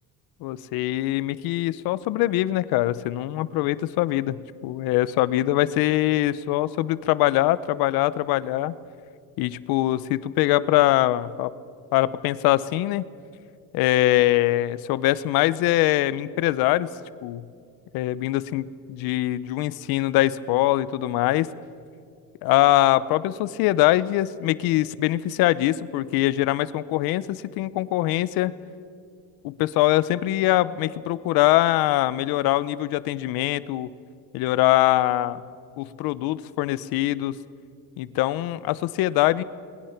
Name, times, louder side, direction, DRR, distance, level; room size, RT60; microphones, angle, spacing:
voice 1, 0.4-4.4 4.6-8.7 9.4-11.5 11.9-13.0 13.7-16.9 17.2-17.4 17.9-21.5 22.4-28.6 29.4-33.9 34.3-35.4 35.8-37.4 38.0-39.4, left 15 dB, 85° left, 16 dB, 0.8 m, -23 dB
30.0 x 20.5 x 5.9 m, 2.3 s
cardioid pair, 150°, 35 cm